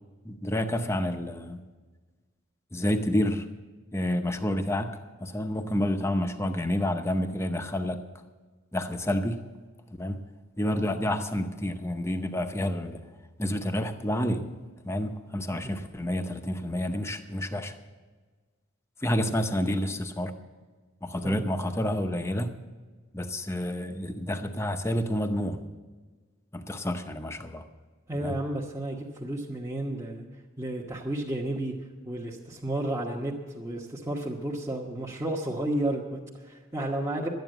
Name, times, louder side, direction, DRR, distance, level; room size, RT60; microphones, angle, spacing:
voice 1, 0.2-1.6 2.7-3.5 3.9-8.0 8.7-9.5 10.0-10.2 10.6-13.0 13.4-14.5 14.8-17.7 19.0-20.3 21.0-22.6 23.1-25.6 26.5-27.6 28.2-28.3, left 1 dB, 15° left, 7 dB, 0.8 m, -29 dB
voice 2, 28.1-30.2 30.6-31.7 32.0-37.3, right 1 dB, 15° right, -5 dB, 1.1 m, -32 dB
12.5 x 9.2 x 7.9 m, 1.4 s
head